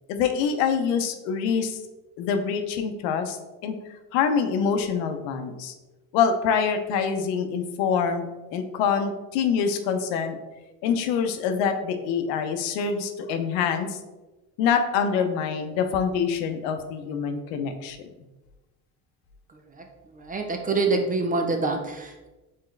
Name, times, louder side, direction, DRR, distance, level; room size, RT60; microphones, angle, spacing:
voice 1, 0.1-1.8 2.2-3.4 3.6-3.8 4.1-5.7 6.1-10.4 10.8-14.0 14.6-18.1, left 6 dB, 80° left, 7 dB, 0.7 m, -25 dB
voice 2, 20.1-22.3, right 3 dB, 20° right, 4 dB, 0.4 m, -26 dB
4.5 x 3.5 x 3.2 m, 1.1 s
cardioid pair, 115°, 42 cm